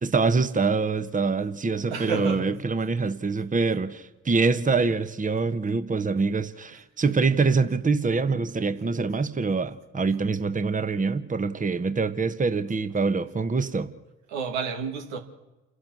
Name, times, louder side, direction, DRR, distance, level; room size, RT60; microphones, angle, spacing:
voice 1, 0.0-13.9, right 4 dB, 25° right, 1.3 m, -25 dB
voice 2, 1.9-2.5 6.7-6.8 14.3-15.2, right 5 dB, 85° right, 2.3 m, -30 dB
29.0 x 11.5 x 7.8 m
hypercardioid pair, 55°, 34 cm